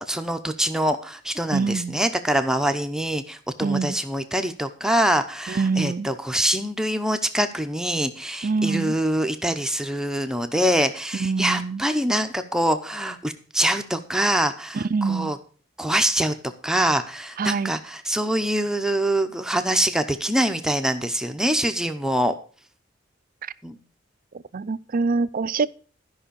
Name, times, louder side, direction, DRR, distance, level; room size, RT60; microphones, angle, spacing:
voice 1, 0.1-15.4 15.8-16.3 16.6-22.3 23.6-23.7, right 1 dB, 5° right, 0.7 m, -24 dB
voice 2, 1.5-2.0 3.6-4.0 5.5-6.1 8.4-8.9 11.2-11.8 14.7-15.3 17.4-17.7 24.5-25.7, right 4 dB, 45° right, 0.5 m, -24 dB
13.0 x 5.6 x 6.8 m
head